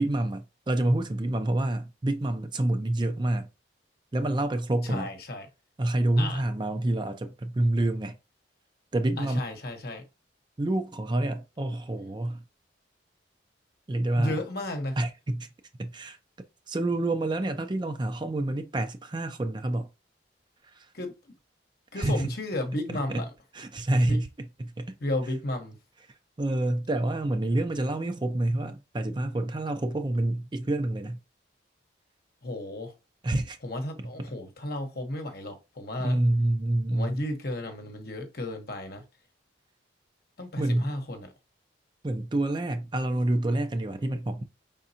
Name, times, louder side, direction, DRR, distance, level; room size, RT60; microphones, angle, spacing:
voice 1, 0.0-3.5 4.1-5.1 5.8-8.1 8.9-9.4 10.6-12.4 13.9-14.4 15.0-15.5 15.8-16.2 16.7-19.9 20.6-20.9 22.0-22.3 23.1-23.2 23.5-25.0 26.4-31.2 33.2-33.6 34.0-34.1 36.0-37.2 40.6-40.9 42.0-44.4, right 1 dB, 25° right, 0.4 m, -27 dB
voice 2, 4.8-5.5 6.2-6.4 9.2-10.1 14.2-15.0 20.9-21.3 21.9-23.3 24.0-24.2 25.0-25.8 32.4-32.9 33.6-36.2 36.9-39.0 40.4-41.3, left 1 dB, 55° left, 1.0 m, -33 dB
5.1 x 3.7 x 2.7 m
head